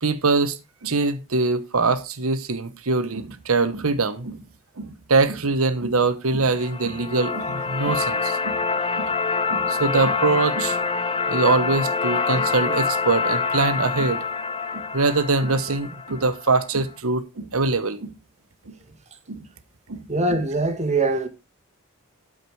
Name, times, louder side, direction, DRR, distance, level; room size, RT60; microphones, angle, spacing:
voice 1, 0.0-4.4 4.8-8.6 9.0-9.1 9.5-10.8 11.3-14.2 14.7-18.1 18.7-18.8 19.3-19.5 19.9-20.1, right 3 dB, 70° right, 1.1 m, -23 dB
sound 1, 6.5-16.6, left 4 dB, 25° left, 0.8 m, -26 dB
voice 2, 20.1-21.3, right 2 dB, 30° right, 1.6 m, -22 dB
12.5 x 5.1 x 4.8 m
head